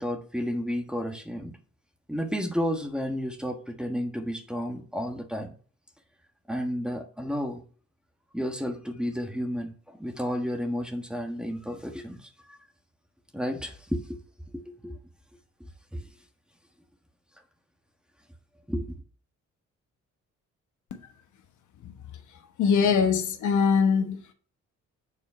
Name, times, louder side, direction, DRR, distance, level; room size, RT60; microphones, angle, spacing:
voice 1, 0.0-1.5 2.1-5.5 6.5-7.6 8.3-12.6 13.3-14.2 14.5-15.0 15.9-16.1 18.7-18.9, equal, 5° right, 1.3 m, -32 dB
voice 2, 22.6-24.2, left 6 dB, 75° left, 1.2 m, -22 dB
7.2 x 4.2 x 5.6 m
cardioid pair, 90°, 30 cm